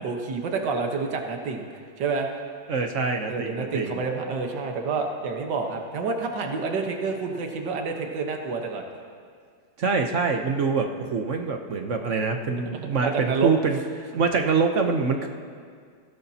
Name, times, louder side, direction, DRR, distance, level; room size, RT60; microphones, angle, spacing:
voice 1, 0.0-1.7 2.0-2.3 3.3-8.8 13.0-13.5, right 4 dB, 75° right, 2 dB, 1.9 m, -28 dB
voice 2, 2.7-4.0 9.8-15.3, right 4 dB, 50° right, 4 dB, 1.0 m, -25 dB
23.0 x 16.0 x 2.8 m, 2.1 s
omnidirectional pair, 1.9 m